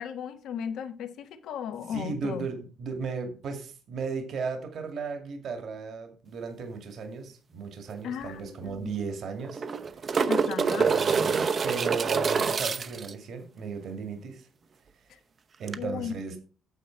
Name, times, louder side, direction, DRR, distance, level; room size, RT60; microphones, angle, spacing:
voice 1, 0.0-2.5 8.0-8.9 10.3-10.9 15.8-16.1, left 8 dB, 80° left, 1.2 m, -36 dB
voice 2, 1.9-10.3 10.8-14.5 15.6-16.4, right 5 dB, 65° right, 2.1 m, -35 dB
sound 1, 7.9-8.0 8.3-8.4 9.4-13.1 15.7-15.8, right 5 dB, 45° right, 0.8 m, -26 dB
9.1 x 7.0 x 4.5 m
cardioid pair, 90°, 0 cm